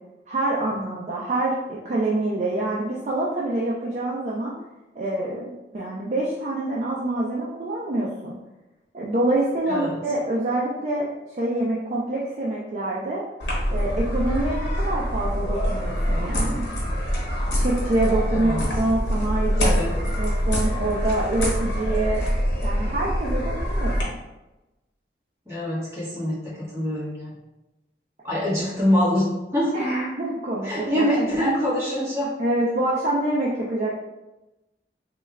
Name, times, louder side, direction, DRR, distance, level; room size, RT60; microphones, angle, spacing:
voice 1, 0.3-4.5 5.0-8.3 8.9-11.1 11.3-13.2 13.7-16.7 17.6-19.8 20.2-22.2 22.6-24.2 29.7-31.3 32.4-33.9, right 2 dB, 40° right, -5 dB, 0.4 m, -26 dB
sound 1, 13.4-24.0, equal, 80° left, 1.0 m, -25 dB
voice 2, 18.3-18.8 19.6-20.0 25.5-27.3 28.2-29.9 30.6-32.3, equal, 15° right, -8 dB, 1.3 m, -25 dB
3.2 x 2.2 x 3.3 m, 1.0 s
head